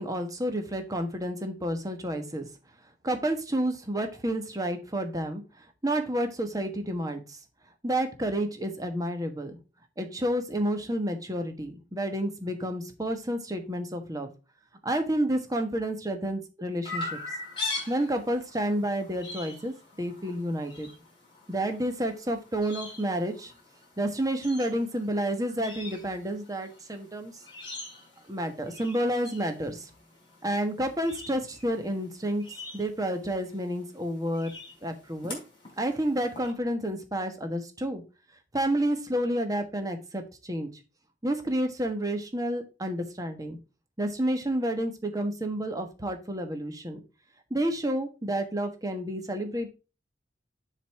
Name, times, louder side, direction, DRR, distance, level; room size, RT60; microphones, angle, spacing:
voice 1, 0.0-2.5 3.0-7.4 7.8-9.6 10.0-14.3 14.8-17.2 17.9-20.9 21.5-23.5 24.0-27.4 28.3-29.9 30.4-32.4 32.7-34.6 34.8-35.4 35.8-38.0 38.5-40.7 41.2-43.6 44.0-47.0 47.5-49.7, right 1 dB, 20° right, 6 dB, 1.3 m, -30 dB
Chirp tweet, 16.9-36.5, left 3 dB, 25° left, 3.5 m, -43 dB
7.5 x 4.1 x 5.8 m, 0.31 s
head